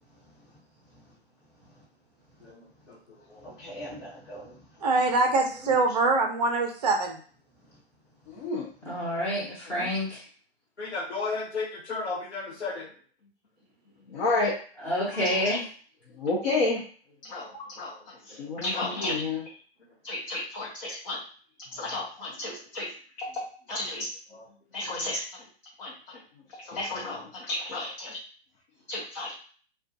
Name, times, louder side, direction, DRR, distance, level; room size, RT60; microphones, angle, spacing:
voice 1, 0.1-0.6 0.9-1.1 1.6-1.8 2.4-2.5 3.4-4.9 5.5-5.8 7.7-7.8, left 1 dB, 25° left, -5 dB, 1.1 m, -44 dB
voice 2, 4.8-7.2, right 3 dB, 40° right, 2 dB, 0.5 m, -24 dB
voice 3, 8.3-8.7 9.7-9.9 14.1-14.6 15.1-15.6 16.1-16.8 17.2-17.5 17.8-17.9 18.3-19.4 20.0-21.2 21.7-24.1 24.7-25.2 25.8-26.2 26.5-28.2 28.9-29.3, left 2 dB, 45° left, -5 dB, 0.8 m, -31 dB
voice 4, 8.9-10.2 14.8-15.6, left 1 dB, 5° left, -7 dB, 0.8 m, -28 dB
voice 5, 10.8-12.9 24.3-24.5, left 4 dB, 85° left, 0 dB, 1.0 m, -33 dB
2.4 x 2.2 x 2.6 m, 0.43 s
figure-of-eight pair, 130°, 32 cm